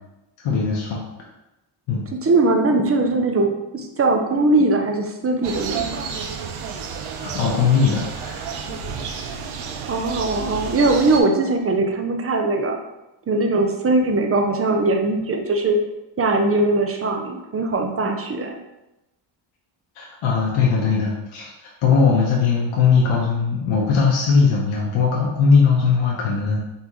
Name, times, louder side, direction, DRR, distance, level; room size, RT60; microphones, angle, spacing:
voice 1, 0.4-1.0 1.9-2.0 7.2-8.5 20.0-26.6, left 5 dB, 85° left, -3 dB, 0.9 m, -19 dB
voice 2, 2.2-6.1 9.9-12.8 13.3-15.8 16.2-18.6, right 2 dB, 30° right, 3 dB, 0.5 m, -20 dB
sound 1, 5.4-11.2, right 5 dB, 80° right, 0.6 m, -31 dB
4.1 x 3.5 x 3.0 m, 0.95 s
cardioid pair, 105°, 48 cm